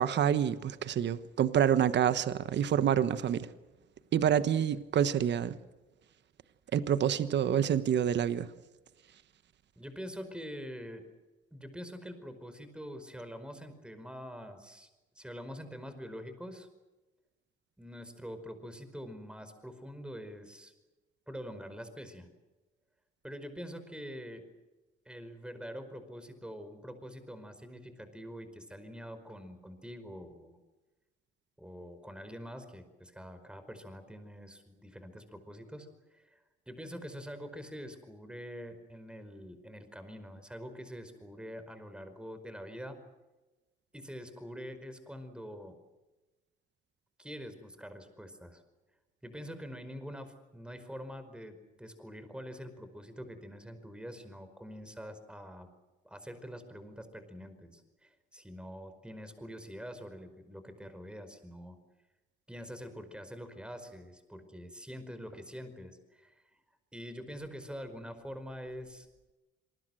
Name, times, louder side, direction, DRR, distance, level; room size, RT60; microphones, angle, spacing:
voice 1, 0.0-3.5 4.1-5.6 6.7-8.5, right 9 dB, 60° right, 1.3 m, -27 dB
voice 2, 9.8-11.0 11.5-14.9 15.1-16.7 17.8-20.7 21.3-22.3 23.2-24.4 25.0-30.6 31.6-36.4 36.7-43.0 43.9-45.8 47.2-48.6 49.2-55.7 56.0-61.8 62.5-66.4 66.9-69.1, equal, 5° right, 4.9 m, -45 dB
27.0 x 20.5 x 7.8 m
cardioid pair, 90°, 20 cm